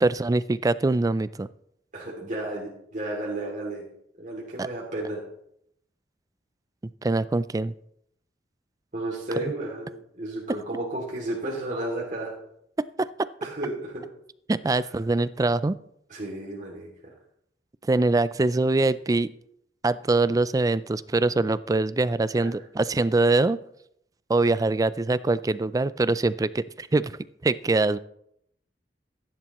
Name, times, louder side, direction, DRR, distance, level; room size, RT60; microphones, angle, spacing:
voice 1, 0.0-1.5 4.6-4.7 7.0-7.7 13.0-13.1 14.5-15.8 17.8-19.3 19.8-23.6 24.3-28.0, right 2 dB, 20° right, 16 dB, 0.4 m, -23 dB
voice 2, 1.9-3.9 4.2-5.2 8.9-12.3 13.4-14.0 16.1-16.9 22.4-22.5, right 1 dB, 45° right, -4 dB, 2.7 m, -33 dB
15.0 x 11.0 x 3.1 m, 0.73 s
head